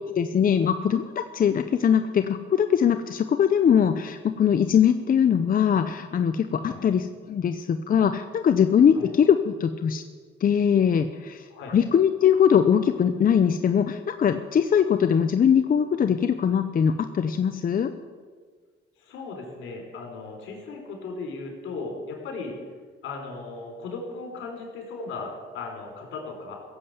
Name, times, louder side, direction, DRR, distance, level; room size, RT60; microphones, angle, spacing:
voice 1, 0.1-10.0 10.4-17.9, left 8 dB, 45° left, 9 dB, 0.7 m, -21 dB
voice 2, 19.0-22.6 23.0-26.5, left 3 dB, 85° left, 2 dB, 4.2 m, -37 dB
16.5 x 7.7 x 8.1 m, 1.5 s
cardioid pair, 90°, 20 cm